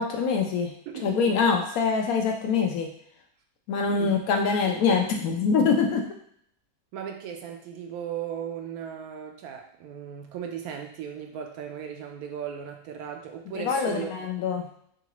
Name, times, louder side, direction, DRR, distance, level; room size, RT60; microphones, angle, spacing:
voice 1, 0.0-0.7 1.0-2.9 3.7-6.0 13.5-14.7, left 5 dB, 70° left, 2 dB, 1.0 m, -24 dB
voice 2, 0.9-1.4 3.9-4.2 4.6-5.0 6.9-14.3, right 8 dB, 75° right, 4 dB, 1.0 m, -37 dB
3.9 x 2.4 x 2.9 m, 0.67 s
omnidirectional pair, 1.7 m